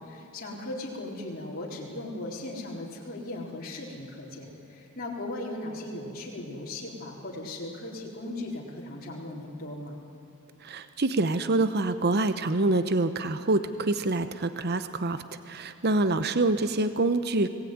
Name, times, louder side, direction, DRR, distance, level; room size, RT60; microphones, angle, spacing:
voice 1, 0.0-10.0, left 1 dB, 45° left, -3 dB, 4.2 m, -38 dB
voice 2, 10.6-17.5, right 2 dB, 50° right, 11 dB, 0.9 m, -26 dB
25.5 x 19.0 x 9.4 m, 2.8 s
head